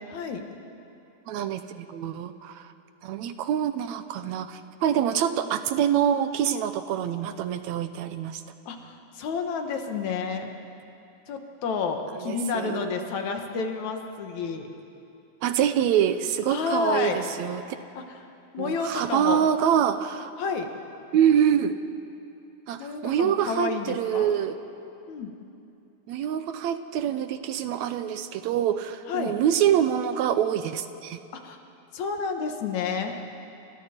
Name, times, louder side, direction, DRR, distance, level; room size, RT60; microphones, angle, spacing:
voice 1, 0.1-0.5 8.7-10.5 11.3-14.7 16.5-17.2 18.0-18.2 18.5-19.4 20.4-20.7 22.8-24.3 25.1-25.3 29.1-29.3 31.3-31.6 31.9-33.2, left 5 dB, 70° left, 4 dB, 2.8 m, -30 dB
voice 2, 1.3-2.7 3.0-8.4 12.1-12.9 15.4-17.8 18.6-20.3 21.1-21.8 22.7-24.6 26.1-31.2, right 9 dB, 75° right, 10 dB, 2.0 m, -25 dB
29.0 x 27.0 x 4.4 m, 2.7 s
omnidirectional pair, 3.4 m